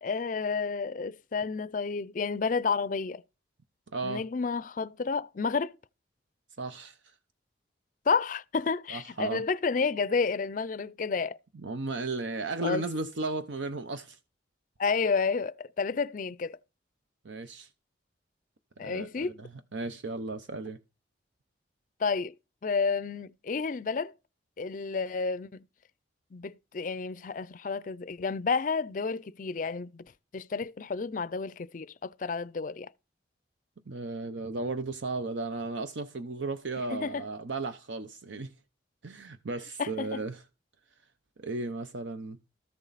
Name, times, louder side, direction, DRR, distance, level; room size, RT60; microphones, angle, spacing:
voice 1, 0.0-3.2 4.0-5.7 8.1-11.4 12.6-12.8 14.8-16.6 18.8-19.4 22.0-22.3 22.6-24.1 24.6-25.6 26.3-30.0 30.3-32.9 36.9-37.2 39.8-40.2, left 5 dB, 45° left, 0.4 m, -30 dB
voice 2, 3.9-4.2 6.6-7.0 8.9-9.4 11.6-14.2 17.2-17.7 18.8-20.8 33.9-38.5 39.0-40.4 41.4-42.4, right 3 dB, 75° right, 0.7 m, -35 dB
13.5 x 7.2 x 4.1 m
head